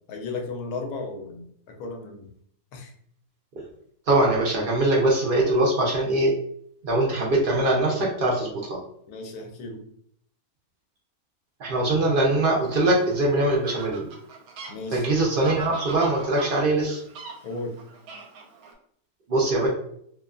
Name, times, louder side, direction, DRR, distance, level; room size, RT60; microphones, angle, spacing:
voice 1, 0.1-2.3 2.7-2.9 9.1-9.8 14.7-15.0 17.4-17.8, left 3 dB, 85° left, 2 dB, 1.1 m, -35 dB
voice 2, 4.1-6.3 6.8-8.8 11.6-14.1 14.9-17.0 19.3-19.7, right 2 dB, 60° right, -2 dB, 0.5 m, -22 dB
Fowl, 12.6-18.7, right 4 dB, 75° right, 1.0 m, -41 dB
2.7 x 2.2 x 2.3 m, 0.66 s
omnidirectional pair, 1.6 m